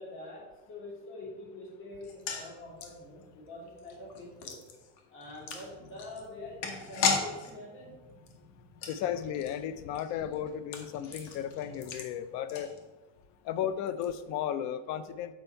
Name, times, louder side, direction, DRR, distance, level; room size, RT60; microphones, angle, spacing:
voice 1, 0.0-4.6 5.1-8.0, left 2 dB, 35° left, -2 dB, 2.0 m, -45 dB
sound 1, 2.0-13.2 13.5-13.6 13.9-14.1, left 5 dB, 90° left, 1.2 m, -38 dB
voice 2, 8.9-12.7 13.5-15.3, left 9 dB, 50° left, 13 dB, 0.5 m, -34 dB
7.0 x 4.5 x 4.4 m, 1.2 s
cardioid pair, 160°, 37 cm